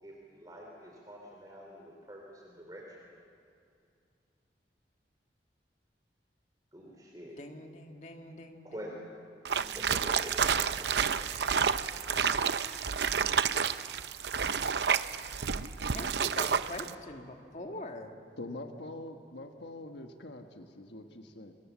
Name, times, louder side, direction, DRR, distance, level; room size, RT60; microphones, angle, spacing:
voice 1, 0.0-3.0 6.7-7.4 8.6-8.9 9.5-12.7, equal, 20° right, -1 dB, 3.3 m, -47 dB
voice 2, 7.4-9.1 15.9-18.2, left 1 dB, 40° left, 4 dB, 1.7 m, -44 dB
sound 1, 9.4-16.9, right 6 dB, 70° right, 0.7 m, -30 dB
voice 3, 18.4-21.5, left 2 dB, 75° left, 5 dB, 1.4 m, -44 dB
29.5 x 23.0 x 7.4 m, 2.5 s
head